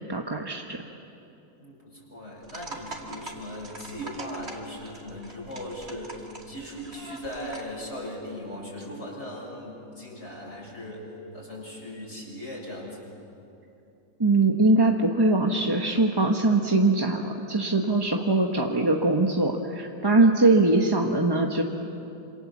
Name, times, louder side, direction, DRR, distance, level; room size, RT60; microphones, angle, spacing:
voice 1, 0.1-0.8 14.2-21.6, right 2 dB, 15° right, 2 dB, 0.9 m, -22 dB
voice 2, 1.6-13.0, equal, 40° left, -3 dB, 7.0 m, -38 dB
sound 1, 2.4-7.8, right 2 dB, 40° right, 2.6 m, -43 dB
27.0 x 27.0 x 7.3 m, 2.7 s
omnidirectional pair, 1.8 m